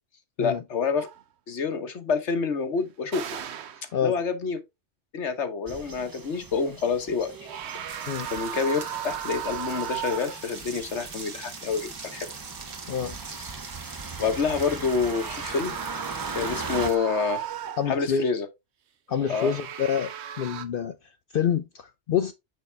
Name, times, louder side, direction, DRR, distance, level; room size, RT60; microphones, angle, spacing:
voice 1, 0.4-1.1 1.5-3.3 4.0-4.6 5.1-7.3 8.3-12.3 14.2-15.8 16.3-17.4 17.9-18.5 19.3-19.5, left 5 dB, 80° left, 1.4 m, -27 dB
sound 1, 1.0-1.2 3.1-3.9 7.2-10.6 14.9-18.0 19.1-20.6, right 10 dB, 70° right, 1.0 m, -36 dB
sound 2, 5.7-16.9, right 4 dB, 30° right, 0.4 m, -39 dB
sound 3, 7.9-17.0, right 4 dB, 55° right, 1.4 m, -43 dB
voice 2, 17.8-18.3 19.1-22.3, left 8 dB, 60° left, 0.7 m, -27 dB
6.4 x 5.6 x 3.3 m
omnidirectional pair, 1.2 m